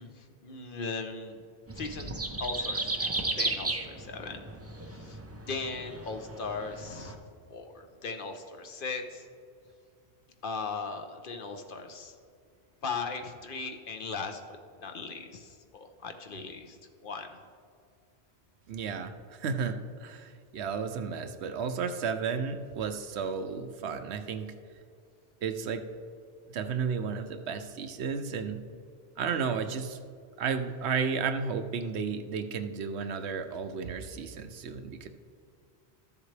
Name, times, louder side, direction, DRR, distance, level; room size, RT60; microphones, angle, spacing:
voice 1, 0.0-1.4 1.7-2.1 2.4-4.4 4.9-7.2 7.5-9.2 10.4-12.1 12.8-14.4 14.8-16.8 17.0-17.4, left 4 dB, 55° left, 5 dB, 0.9 m, -38 dB
sound 1, 1.7-7.1, right 2 dB, 25° right, 0.4 m, -35 dB
voice 2, 18.7-24.5 25.4-25.8 26.5-28.6 29.2-30.0 30.4-35.1, right 5 dB, 80° right, 9 dB, 0.9 m, -33 dB
13.0 x 7.2 x 3.3 m, 2.3 s
omnidirectional pair, 1.1 m